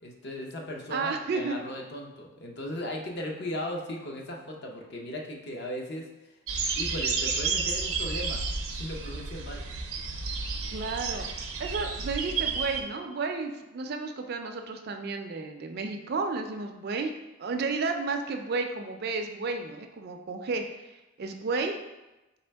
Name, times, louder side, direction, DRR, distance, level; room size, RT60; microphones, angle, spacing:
voice 1, 0.0-6.1 6.8-8.4 8.7-9.6, left 1 dB, 50° left, 1 dB, 0.6 m, -37 dB
voice 2, 0.9-1.6 10.7-11.3 11.6-17.1 17.4-21.8, right 4 dB, 45° right, 5 dB, 0.3 m, -32 dB
sound 1, 6.5-12.8, right 5 dB, 90° right, 0.6 m, -31 dB
4.3 x 3.3 x 3.3 m, 1.0 s
head